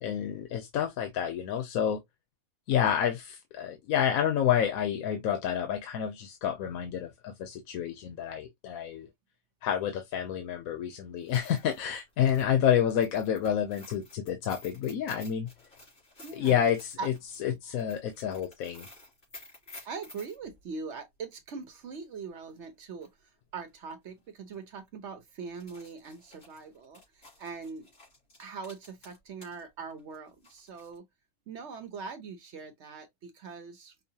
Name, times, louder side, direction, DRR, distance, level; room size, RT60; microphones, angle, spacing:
voice 1, 0.0-2.0 2.7-9.1 9.6-15.5 16.3-17.1 17.4-18.9, left 9 dB, 90° left, 1.1 m, -29 dB
sound 1, 11.2-20.4 22.5-22.6 23.0-23.1 23.9-24.1 24.4-24.5 25.4-29.6 29.9-31.0, left 2 dB, 70° left, 3.3 m, -53 dB
voice 2, 16.2-16.7 17.0-17.1 19.8-23.1 23.5-27.9 28.4-31.1 31.5-33.9, right 5 dB, 60° right, 1.0 m, -42 dB
5.4 x 2.1 x 2.8 m
omnidirectional pair, 1.4 m